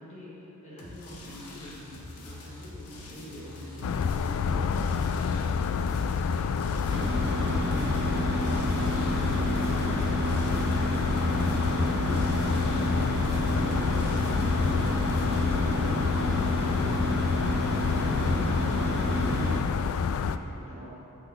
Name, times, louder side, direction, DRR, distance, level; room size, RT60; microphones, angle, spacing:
voice 1, 0.0-4.7 6.3-14.7 16.0-20.9, equal, 30° left, -8 dB, 1.9 m, -45 dB
sound 1, 0.8-15.6, left 1 dB, 90° left, 1.1 m, -44 dB
sound 2, 3.8-20.4, left 6 dB, 65° left, 0.3 m, -28 dB
voice 2, 3.8-6.1 15.5-16.0 20.7-20.9, equal, 25° right, -8 dB, 1.9 m, -47 dB
sound 3, 6.9-19.6, right 1 dB, 45° right, 0.7 m, -30 dB
5.9 x 5.8 x 6.7 m, 2.8 s
head